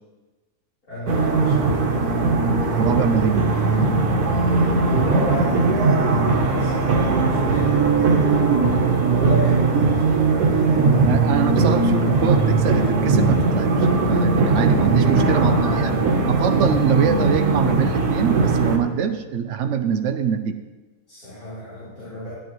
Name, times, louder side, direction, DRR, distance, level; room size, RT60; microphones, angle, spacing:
voice 1, 0.9-2.0 4.7-5.5 6.4-11.2 15.1-16.2 21.1-22.3, left 1 dB, 75° left, -14 dB, 4.4 m, -32 dB
sound 1, 1.1-18.8, right 3 dB, 80° right, 1.6 m, -19 dB
voice 2, 2.8-3.5 11.1-15.9 16.3-20.6, right 7 dB, 65° right, 10 dB, 0.8 m, -23 dB
12.0 x 10.5 x 3.1 m, 1.2 s
omnidirectional pair, 1.6 m